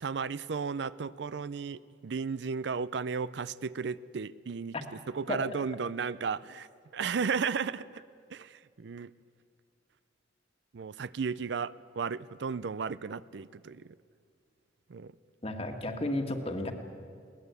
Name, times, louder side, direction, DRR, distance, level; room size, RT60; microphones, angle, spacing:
voice 1, 0.0-4.7 5.1-6.7 6.9-7.8 8.3-9.1 10.7-13.9 14.9-15.1, right 5 dB, 65° right, 17 dB, 0.5 m, -34 dB
voice 2, 15.4-16.7, left 1 dB, 30° left, 5 dB, 1.7 m, -33 dB
21.5 x 19.0 x 8.2 m, 2.3 s
head